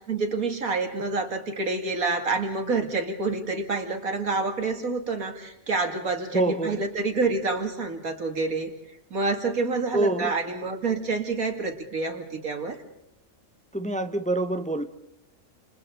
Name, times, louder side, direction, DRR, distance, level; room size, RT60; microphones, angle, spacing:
voice 1, 0.1-8.7 9.1-12.8, right 3 dB, 85° right, 4 dB, 3.1 m, -28 dB
voice 2, 6.3-6.8 9.9-10.3 13.7-14.8, right 2 dB, 5° left, 8 dB, 0.9 m, -26 dB
30.0 x 29.0 x 4.0 m, 0.80 s
omnidirectional pair, 1.4 m